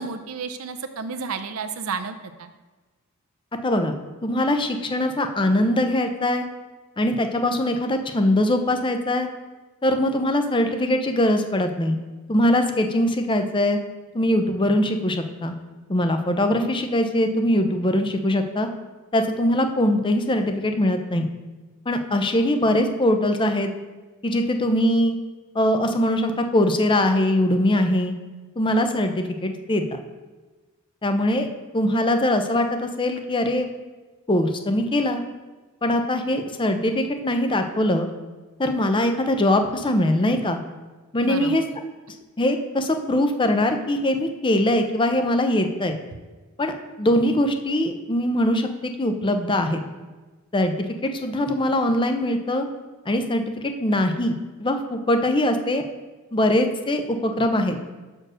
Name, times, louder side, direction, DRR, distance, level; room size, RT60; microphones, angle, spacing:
voice 1, 0.0-2.5 41.2-41.5, right 5 dB, 70° right, 9 dB, 0.6 m, -31 dB
voice 2, 3.6-3.9 4.2-6.5 7.0-9.3 9.8-12.0 12.3-13.8 14.1-15.5 15.9-18.7 19.1-21.3 21.9-23.7 24.2-25.2 25.5-28.1 28.6-30.0 31.0-31.5 31.7-33.7 34.3-35.2 35.8-38.1 38.6-40.6 41.1-41.6 42.4-46.0 46.6-49.8 50.5-52.7 53.1-55.8 56.3-57.8, left 1 dB, 20° left, 6 dB, 0.6 m, -22 dB
6.3 x 4.5 x 6.3 m, 1.2 s
head